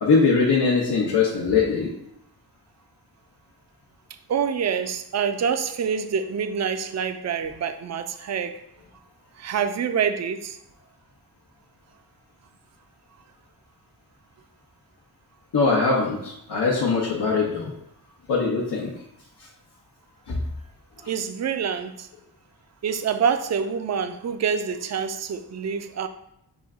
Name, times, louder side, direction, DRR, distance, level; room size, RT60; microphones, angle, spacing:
voice 1, 0.0-1.9 15.5-17.7 18.3-18.9 19.4-19.5 20.3-20.4 21.0-21.1, left 4 dB, 85° left, -4 dB, 0.9 m, -22 dB
voice 2, 4.3-8.6 9.4-10.6 21.1-22.1 22.8-26.1, right 7 dB, 45° right, 9 dB, 0.4 m, -26 dB
6.1 x 2.2 x 3.5 m, 0.79 s
wide cardioid pair, 65°, 39 cm